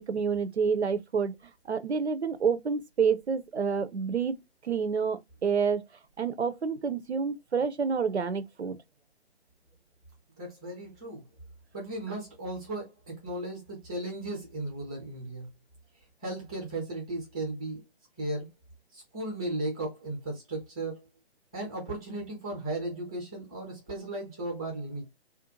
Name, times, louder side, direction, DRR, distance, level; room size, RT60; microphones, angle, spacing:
voice 1, 0.0-1.3 1.7-4.3 4.6-5.8 6.2-8.8, right 6 dB, 80° right, 0.5 m, -28 dB
voice 2, 10.4-11.2 11.7-15.5 16.2-17.8 18.2-18.5 18.9-21.0 21.5-25.1, right 2 dB, 5° right, 0.5 m, -36 dB
2.5 x 2.1 x 2.9 m
figure-of-eight pair, 140°, 32 cm